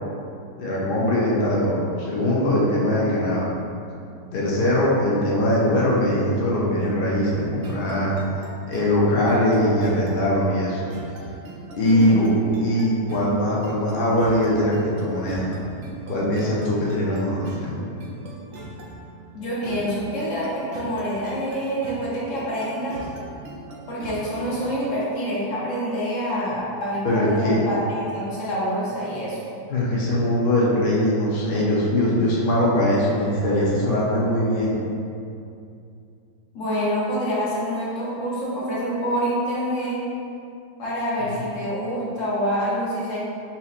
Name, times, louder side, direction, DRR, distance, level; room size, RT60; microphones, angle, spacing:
voice 1, 0.6-3.5 4.3-8.2 8.7-10.8 11.8-12.3 12.6-15.5 16.1-17.7 27.0-27.6 29.7-34.8, left 1 dB, 85° left, -5 dB, 0.4 m, -21 dB
sound 1, 7.6-25.1, right 2 dB, 70° right, 0.8 m, -40 dB
voice 2, 11.8-12.3 19.3-23.1 23.9-29.4 36.5-40.0 40.8-43.2, equal, 55° left, -7 dB, 1.1 m, -26 dB
4.1 x 2.8 x 2.4 m, 2.5 s
omnidirectional pair, 1.8 m